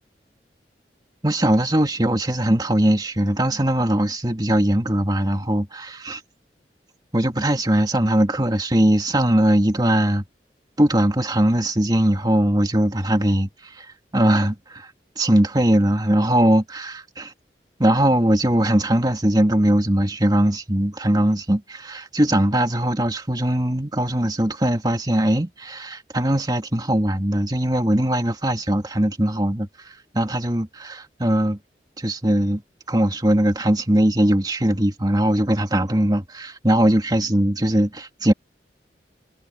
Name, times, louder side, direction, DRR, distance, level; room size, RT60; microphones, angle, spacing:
voice 1, 1.2-6.2 7.1-10.2 10.8-13.5 13.8-13.9 14.1-14.9 15.2-17.0 17.8-31.6 32.0-32.6 32.9-38.3, right 1 dB, 25° right, 2.2 m, -20 dB
head